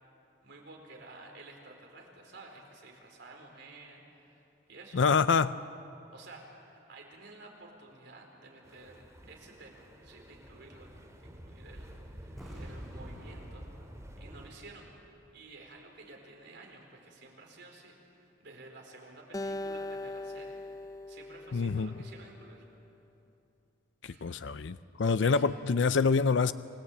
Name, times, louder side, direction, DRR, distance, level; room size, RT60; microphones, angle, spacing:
voice 1, 0.4-5.0 6.1-10.9 11.2-14.9 15.3-22.6 24.1-24.4 25.2-25.4, right 2 dB, 65° right, 1 dB, 4.5 m, -52 dB
voice 2, 4.9-5.6 21.5-21.9 24.0-26.5, left 5 dB, 65° left, 13 dB, 0.5 m, -26 dB
sound 1, 8.6-14.5, equal, 15° right, 2.4 m, -49 dB
sound 2, 12.3-15.2 15.5-15.6, equal, ahead, 6.9 m, -50 dB
Acoustic guitar, 19.3-22.7, left 2 dB, 20° left, 0.5 m, -40 dB
28.5 x 19.0 x 8.6 m, 2.7 s
head